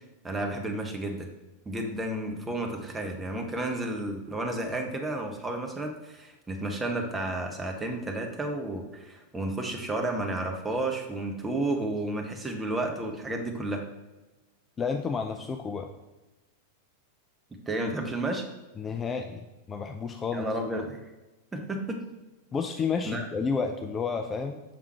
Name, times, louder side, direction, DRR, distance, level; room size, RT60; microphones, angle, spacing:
voice 1, 0.2-1.3 1.7-13.8 17.7-18.4 20.3-21.0 21.5-22.0 23.0-23.2, right 2 dB, 15° right, 3 dB, 0.8 m, -32 dB
voice 2, 14.8-15.9 18.8-20.5 22.5-24.6, left 5 dB, 20° left, 4 dB, 0.4 m, -31 dB
6.0 x 3.6 x 4.3 m, 1.1 s
figure-of-eight pair, 90°, 0 cm